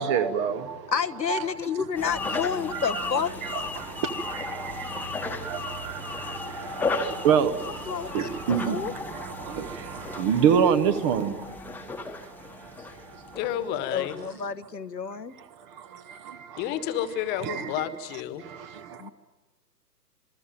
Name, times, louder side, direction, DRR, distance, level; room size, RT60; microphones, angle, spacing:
voice 1, 0.0-0.9 1.3-2.4 2.7-13.4 15.1-16.7 17.3-17.9 18.4-19.1, right 7 dB, 20° right, 0.9 m, -29 dB
voice 2, 0.9-3.3 7.9-8.3 8.6-8.9 13.9-15.3 19.0-19.1, left 7 dB, 80° left, 1.3 m, -29 dB
sound 1, 2.0-14.3, left 3 dB, 5° left, 1.3 m, -35 dB
voice 3, 13.3-14.2 16.6-18.5, left 11 dB, 20° left, 1.5 m, -30 dB
27.0 x 21.5 x 9.1 m
figure-of-eight pair, 130°, 50 cm